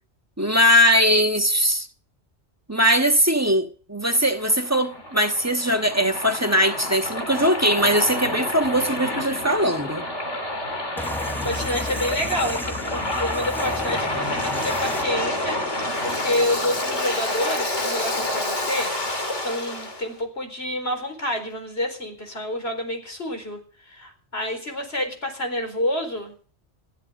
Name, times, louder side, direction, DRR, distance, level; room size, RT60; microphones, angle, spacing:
voice 1, 0.4-1.9 2.7-10.0, equal, 15° right, 1.4 m, -20 dB
Waves surf, 4.2-20.0, left 1 dB, 90° left, 3.4 m, -28 dB
voice 2, 11.0-23.6 23.9-26.3, left 1 dB, 60° left, 4.6 m, -29 dB
sound 1, 11.0-15.8, left 1 dB, ahead, 0.8 m, -35 dB
15.0 x 12.0 x 6.6 m
omnidirectional pair, 1.2 m